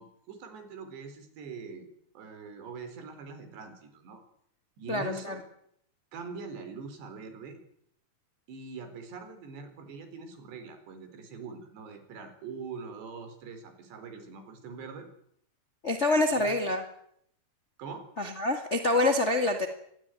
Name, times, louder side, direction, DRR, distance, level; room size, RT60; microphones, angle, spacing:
voice 1, 0.0-1.9 2.1-4.2 4.8-5.4 6.1-7.6 8.5-15.1 16.3-16.6 17.8-18.1, right 5 dB, 75° right, 9 dB, 6.2 m, -43 dB
voice 2, 4.9-5.4 15.8-16.8 18.2-19.7, left 2 dB, 35° left, 6 dB, 1.0 m, -26 dB
24.5 x 20.5 x 9.1 m, 0.71 s
omnidirectional pair, 4.9 m